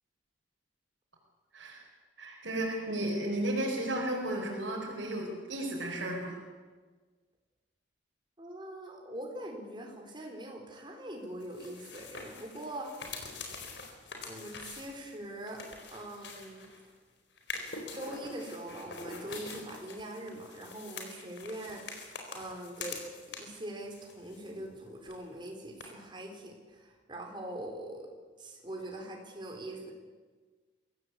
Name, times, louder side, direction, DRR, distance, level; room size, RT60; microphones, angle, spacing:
voice 1, 1.5-1.9 2.2-6.4, right 1 dB, 80° right, -3 dB, 4.6 m, -33 dB
voice 2, 8.4-13.1 14.2-15.6 15.9-16.6 17.9-23.0 23.3-28.1 28.4-29.9, right 1 dB, 25° right, 2 dB, 4.3 m, -43 dB
sound 1, 11.4-16.9 17.4-23.6 23.9-24.8 25.0-25.1 25.8-25.9, left 4 dB, 65° left, 4.3 m, -45 dB
23.5 x 16.5 x 8.3 m, 1.4 s
head